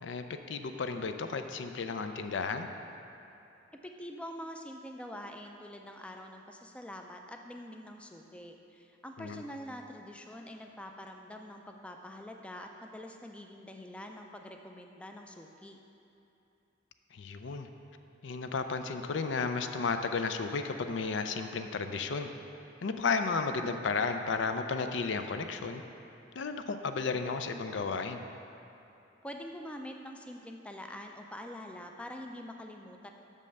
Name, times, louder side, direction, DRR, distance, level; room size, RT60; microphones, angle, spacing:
voice 1, 0.0-2.7 9.2-9.4 17.1-17.7 18.2-22.3 22.8-25.8 26.4-28.2, left 4 dB, 70° left, 7 dB, 0.4 m, -33 dB
voice 2, 3.7-15.8 29.2-33.1, equal, 5° left, 3 dB, 0.3 m, -45 dB
6.3 x 5.4 x 6.6 m, 2.8 s
head